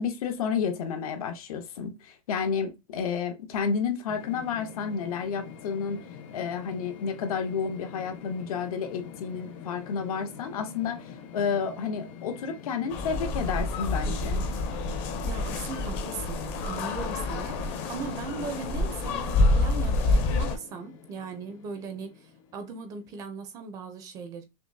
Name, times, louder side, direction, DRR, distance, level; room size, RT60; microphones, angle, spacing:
voice 1, 0.0-6.0 6.3-14.4, left 6 dB, 85° left, 1.1 m, -31 dB
sound 1, 4.1-23.2, left 7 dB, 65° left, 0.9 m, -45 dB
sound 2, 12.9-20.6, left 2 dB, 30° left, 0.6 m, -27 dB
voice 2, 15.2-24.5, right 5 dB, 20° right, 0.5 m, -39 dB
5.7 x 2.0 x 2.6 m
supercardioid pair, 175°, 18 cm